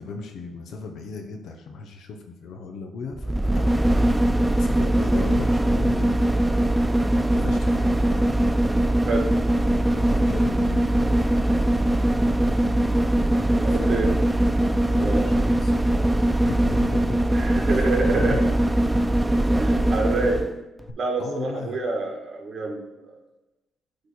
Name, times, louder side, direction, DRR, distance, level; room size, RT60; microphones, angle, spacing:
voice 1, 0.0-6.1 7.3-8.4 9.9-11.0 13.7-14.2 14.7-16.1 16.4-17.2 17.7-18.4 20.9-21.8, left 4 dB, 75° left, 3 dB, 0.8 m, -37 dB
sound 1, 3.1-20.5 20.9-21.0, right 1 dB, 10° right, 0.3 m, -21 dB
voice 2, 13.6-14.1 15.0-15.3 17.3-18.4 19.6-20.5 21.0-23.2, right 3 dB, 50° right, 1 dB, 1.6 m, -27 dB
8.4 x 3.3 x 4.2 m, 1.1 s
cardioid pair, 90°, 0 cm